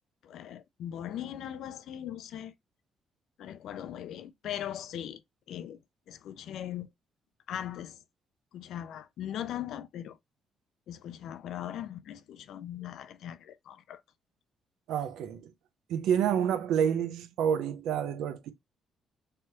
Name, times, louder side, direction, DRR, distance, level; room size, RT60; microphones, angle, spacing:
voice 1, 0.2-2.5 3.4-5.2 5.5-5.8 6.1-6.9 7.5-8.0 8.5-10.2 10.9-14.0, left 10 dB, 75° left, 0.3 m, -39 dB
voice 2, 14.9-15.5 15.9-18.5, right 8 dB, 85° right, 0.4 m, -28 dB
3.2 x 2.2 x 2.8 m
cardioid pair, 90°, 0 cm